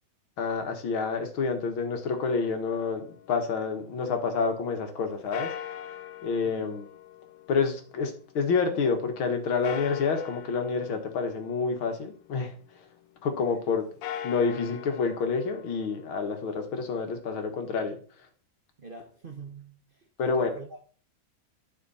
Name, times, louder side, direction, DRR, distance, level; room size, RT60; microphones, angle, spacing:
voice 1, 0.4-5.6 6.2-6.9 7.5-12.9 13.2-13.8 14.2-18.3 20.2-20.6, left 5 dB, 90° left, 2.4 m, -28 dB
sound 1, 2.1-4.2 5.3-8.7 9.6-12.6 13.9-17.9, left 10 dB, 70° left, 1.4 m, -43 dB
voice 2, 18.8-20.8, right 4 dB, 35° right, 0.9 m, -45 dB
12.0 x 6.0 x 4.3 m
omnidirectional pair, 2.2 m